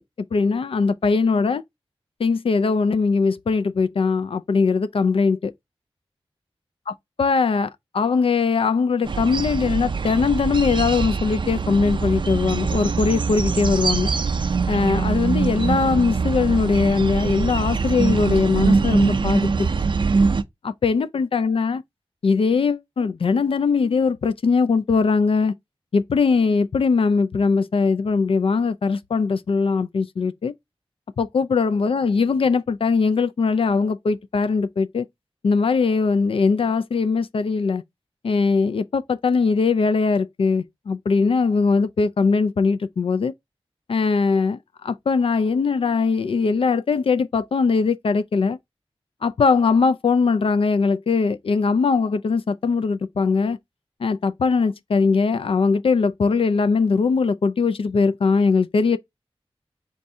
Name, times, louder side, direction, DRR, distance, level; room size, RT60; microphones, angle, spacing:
voice 1, 0.3-1.6 2.2-5.5 7.2-14.1 14.7-19.7 20.6-21.8 22.2-25.5 25.9-30.5 31.2-35.1 35.4-37.8 38.2-43.3 43.9-48.6 49.2-53.6 54.0-59.0, left 4 dB, 65° left, 0.3 m, -20 dB
sound 1, 9.0-20.4, right 4 dB, 55° right, 0.4 m, -23 dB
3.5 x 2.6 x 4.1 m
wide cardioid pair, 60°, 10 cm